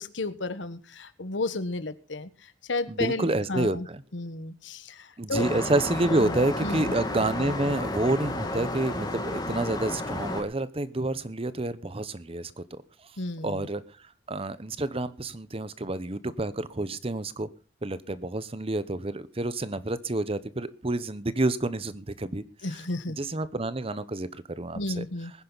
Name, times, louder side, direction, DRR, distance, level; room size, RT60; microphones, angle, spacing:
voice 1, 0.0-3.9 4.1-5.4 6.1-6.3 6.6-6.9 13.2-13.7 22.6-23.2 24.7-25.3, left 2 dB, 90° left, 13 dB, 1.4 m, -33 dB
voice 2, 2.9-4.0 5.2-12.8 13.4-13.8 14.3-17.5 17.8-22.4 23.2-25.0, right 2 dB, 30° right, 16 dB, 0.9 m, -29 dB
sound 1, 5.3-10.4, left 1 dB, 25° left, 2.7 m, -32 dB
20.0 x 10.5 x 4.0 m, 0.33 s
head